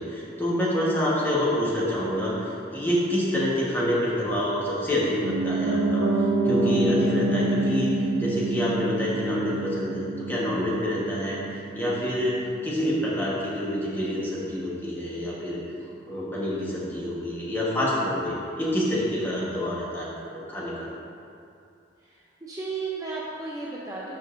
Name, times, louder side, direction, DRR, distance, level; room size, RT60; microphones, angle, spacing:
voice 1, 0.0-15.6 16.1-20.1 20.3-20.9, equal, 10° left, -7 dB, 1.2 m, -27 dB
Piano, 5.2-15.2 15.5-15.6, right 2 dB, 90° right, 0.9 m, -28 dB
voice 2, 22.0-24.2, right 4 dB, 20° right, -5 dB, 0.5 m, -34 dB
12.0 x 5.0 x 2.6 m, 2.6 s
head